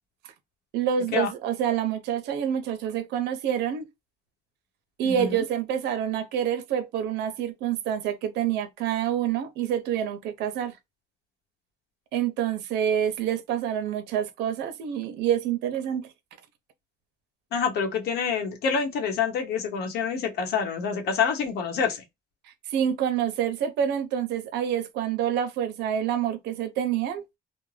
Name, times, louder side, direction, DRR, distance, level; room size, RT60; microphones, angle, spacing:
voice 1, 0.7-3.9 5.0-10.8 12.1-16.1 22.4-27.2, right 9 dB, 80° right, 0.6 m, -27 dB
voice 2, 5.0-5.4 17.5-22.0, left 6 dB, 70° left, 0.9 m, -27 dB
2.5 x 2.1 x 3.1 m
cardioid pair, 110°, 17 cm